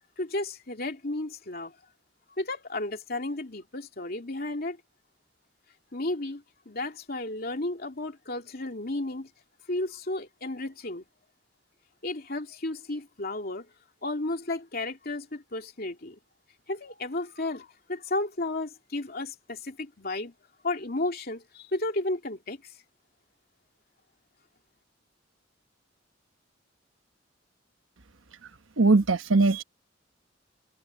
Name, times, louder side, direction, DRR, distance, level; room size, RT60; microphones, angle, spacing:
voice 1, 0.2-1.7 2.4-4.8 5.9-9.3 9.7-11.0 12.0-13.7 14.0-16.2 16.7-20.3 20.6-22.7, left 2 dB, 50° left, 2.8 m, -33 dB
voice 2, 28.8-29.6, right 3 dB, 90° right, 1.1 m, -20 dB
head